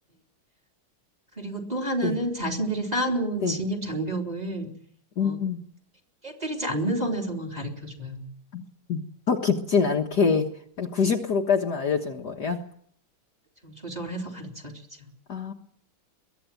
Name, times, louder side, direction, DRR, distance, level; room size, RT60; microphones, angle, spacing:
voice 1, 1.4-4.7 5.2-5.4 6.2-8.2 13.6-14.7 15.0-15.1, right 1 dB, 15° right, 2 dB, 3.7 m, -30 dB
voice 2, 5.2-5.6 8.5-9.0 9.3-10.5 10.8-12.6 15.3-15.5, left 5 dB, 50° left, 2 dB, 1.7 m, -25 dB
22.5 x 14.0 x 9.1 m, 0.64 s
omnidirectional pair, 2.4 m